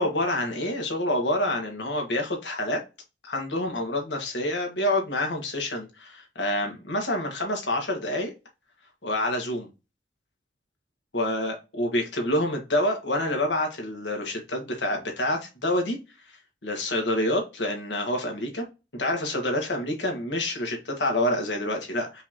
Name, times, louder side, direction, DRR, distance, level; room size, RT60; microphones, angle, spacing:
voice 1, 0.0-2.8 3.2-8.3 9.0-9.7 11.1-16.0 16.6-18.6 18.9-22.2, left 1 dB, 90° left, 1.6 m, -27 dB
5.6 x 3.3 x 2.8 m
head